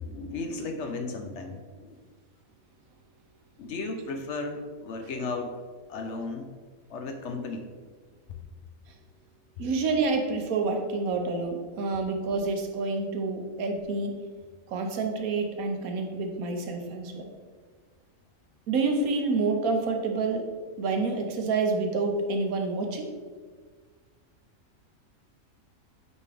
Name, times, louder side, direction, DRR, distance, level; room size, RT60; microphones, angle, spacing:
voice 1, 0.0-2.0 3.6-5.6 5.9-6.5 6.9-7.7, left 3 dB, 65° left, 5 dB, 0.8 m, -35 dB
voice 2, 9.6-14.1 14.7-17.3 18.7-20.5 20.8-23.1, right 3 dB, 85° right, 4 dB, 1.2 m, -28 dB
8.2 x 3.6 x 3.3 m, 1.5 s
omnidirectional pair, 1.5 m